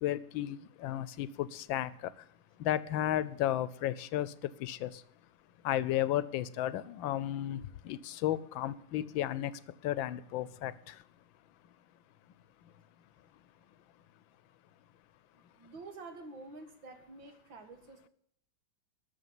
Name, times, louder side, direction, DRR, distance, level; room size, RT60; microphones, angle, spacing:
voice 1, 0.0-2.1 2.6-4.3 4.6-5.0 5.6-11.0, left 12 dB, 85° left, 17 dB, 1.5 m, -33 dB
voice 2, 15.3-18.1, right 3 dB, 80° right, 6 dB, 2.5 m, -49 dB
13.0 x 6.9 x 9.4 m, 0.73 s
omnidirectional pair, 2.1 m